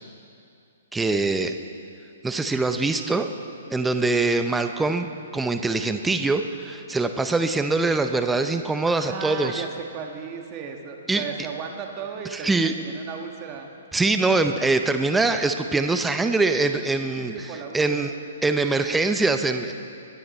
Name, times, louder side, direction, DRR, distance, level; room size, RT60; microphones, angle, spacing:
voice 1, 0.9-1.6 2.2-3.3 3.7-9.6 11.1-11.2 12.3-12.7 13.9-17.3 17.7-18.1 18.4-19.7, right 3 dB, 5° right, 7 dB, 0.6 m, -23 dB
voice 2, 8.9-13.7 17.2-18.1, right 6 dB, 30° right, 3 dB, 1.5 m, -35 dB
20.5 x 11.5 x 4.3 m, 2.5 s
hypercardioid pair, 135°, 0 cm